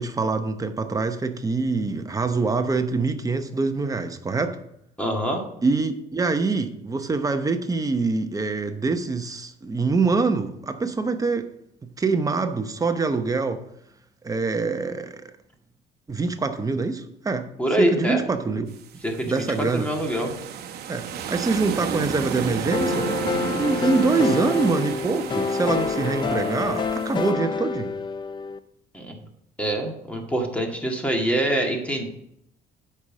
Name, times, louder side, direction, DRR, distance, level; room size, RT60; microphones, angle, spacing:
voice 1, 0.0-4.6 5.6-11.5 12.0-13.6 14.2-15.3 16.1-17.5 17.8-18.7 19.3-19.9 20.9-23.1 23.5-27.9, right 4 dB, 20° right, 0.9 m, -25 dB
voice 2, 5.0-5.4 17.6-18.2 19.0-20.3 28.9-29.2 29.6-32.1, right 1 dB, 10° left, 2.0 m, -25 dB
sound 1, 18.7-27.3, right 8 dB, 70° right, 0.9 m, -32 dB
Lead Piano, 22.7-28.6, left 5 dB, 30° left, 0.5 m, -27 dB
8.2 x 5.7 x 6.2 m
cardioid pair, 110°, 17 cm